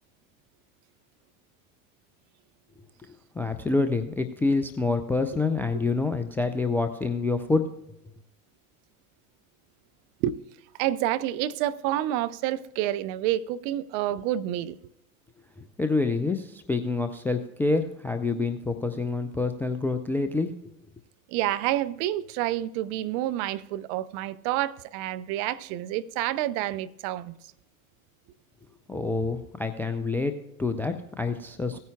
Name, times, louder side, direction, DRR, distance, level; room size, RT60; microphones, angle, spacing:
voice 1, 3.1-7.7 15.6-20.5 28.9-31.8, left 3 dB, 5° left, 0.3 m, -27 dB
voice 2, 10.8-14.8 21.3-27.4 31.7-31.8, right 13 dB, 40° right, 0.6 m, -28 dB
17.0 x 9.4 x 2.3 m
figure-of-eight pair, 75°, 42 cm